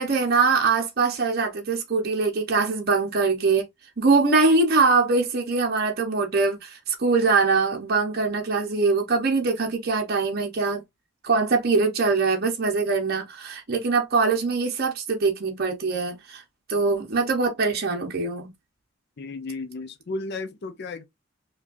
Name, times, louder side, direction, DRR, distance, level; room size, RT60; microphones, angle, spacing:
voice 1, 0.0-3.7 4.0-10.8 11.2-16.4 16.7-18.5, right 4 dB, 50° right, 0.7 m, -23 dB
voice 2, 19.2-21.0, left 3 dB, 55° left, 0.5 m, -34 dB
4.9 x 2.3 x 2.4 m
head